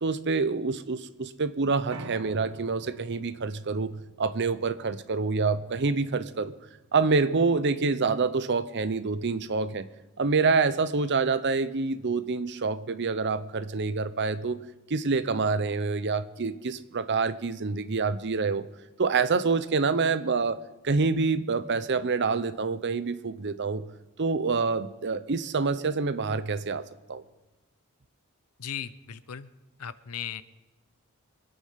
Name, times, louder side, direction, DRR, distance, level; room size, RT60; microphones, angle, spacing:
voice 1, 0.0-6.5 6.9-9.9 10.2-14.6 14.9-18.7 19.0-23.9 24.2-26.8 27.1-27.2, right 4 dB, 50° right, 13 dB, 0.7 m, -27 dB
Piano, 1.9-8.1, right 4 dB, 75° right, 1.0 m, -48 dB
voice 2, 28.6-29.5 29.8-30.4, left 8 dB, 80° left, 15 dB, 0.7 m, -37 dB
24.5 x 9.4 x 5.8 m, 1.1 s
head